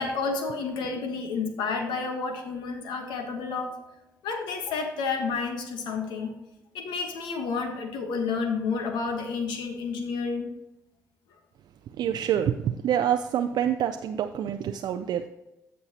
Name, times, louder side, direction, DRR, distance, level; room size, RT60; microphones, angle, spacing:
voice 1, 0.0-3.8 4.2-6.3 6.7-10.5, left 4 dB, 70° left, 5 dB, 1.2 m, -30 dB
voice 2, 12.0-15.3, right 9 dB, 60° right, 7 dB, 0.4 m, -26 dB
13.5 x 5.4 x 2.8 m, 0.94 s
hypercardioid pair, 55°, 8 cm